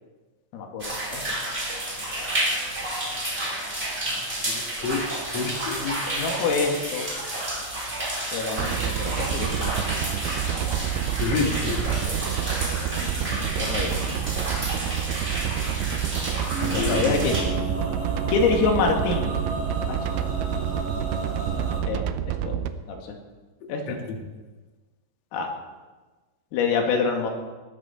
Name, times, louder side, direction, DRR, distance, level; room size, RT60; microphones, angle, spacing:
voice 1, 0.5-1.4 6.1-7.1 8.3-9.9 13.0-14.2 16.7-17.4 18.3-19.4 19.9-20.2 21.8-22.6 22.9-23.2 23.7-24.0 25.3-25.5 26.5-27.3, left 4 dB, 90° left, 2 dB, 4.8 m, -27 dB
drain - normalized - trimmed, 0.8-17.4, right 1 dB, 15° right, 3.8 m, -30 dB
voice 2, 5.3-6.3 11.2-11.9 16.6-17.1 23.9-24.0, left 4 dB, 65° left, 2 dB, 1.6 m, -28 dB
sound 1, 8.6-22.7, right 10 dB, 80° right, 2.8 m, -28 dB
Male singing, 16.5-21.8, right 1 dB, 45° right, 6.5 m, -32 dB
20.0 x 14.0 x 4.4 m, 1.3 s
omnidirectional pair, 5.8 m